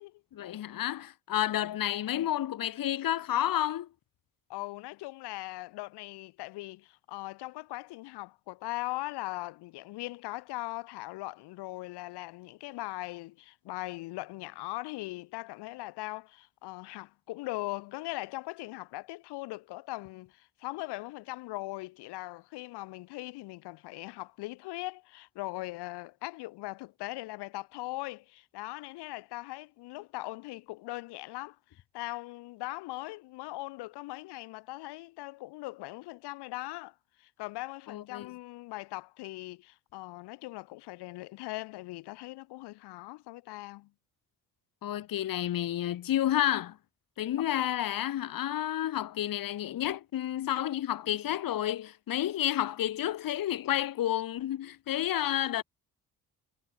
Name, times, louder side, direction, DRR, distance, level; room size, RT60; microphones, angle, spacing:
voice 1, 0.3-3.9 37.9-38.3 44.8-46.8 47.2-55.6, left 12 dB, 55° left, 1.0 m, -30 dB
voice 2, 4.5-43.9 47.4-47.5, left 20 dB, 80° left, 0.8 m, -40 dB
supercardioid pair, 50°, 40 cm